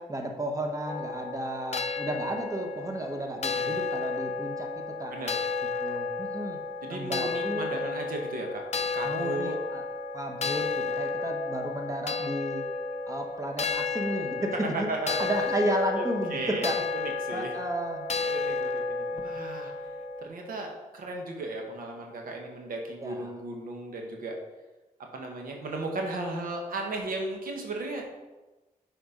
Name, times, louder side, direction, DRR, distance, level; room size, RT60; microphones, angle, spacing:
voice 1, 0.1-5.1 5.8-6.6 6.9-7.6 9.0-9.8 10.1-12.6 13.1-14.9 15.2-16.8 17.3-18.0 23.0-23.4, right 1 dB, 25° right, 3 dB, 1.1 m, -33 dB
sound 1, 0.9-20.3, left 4 dB, 50° left, 0.6 m, -32 dB
voice 2, 6.8-8.6 8.9-9.5 14.7-15.3 15.9-16.0 16.3-17.5 18.3-19.7 20.2-24.3 25.1-28.1, right 2 dB, 80° right, 2 dB, 1.2 m, -35 dB
6.8 x 4.3 x 5.1 m, 1.1 s
cardioid pair, 55°, 14 cm